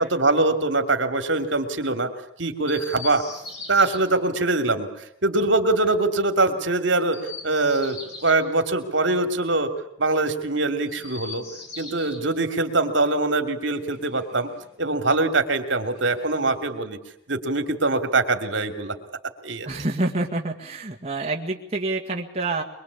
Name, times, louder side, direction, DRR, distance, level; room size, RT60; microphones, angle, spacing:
voice 1, 0.0-2.1 2.4-3.2 3.7-4.9 5.2-7.2 7.4-9.7 10.0-11.4 11.8-14.5 14.8-17.0 17.3-18.9 19.4-19.7, right 2 dB, 70° right, 7 dB, 2.9 m, -23 dB
Chirp tweet, 2.6-4.0 7.0-8.4 10.8-12.2 13.7-14.7 15.8-16.7, left 4 dB, 60° left, 7.6 m, -41 dB
voice 2, 19.6-22.6, right 2 dB, 30° right, 0 dB, 2.0 m, -27 dB
23.5 x 23.5 x 8.4 m, 0.75 s
head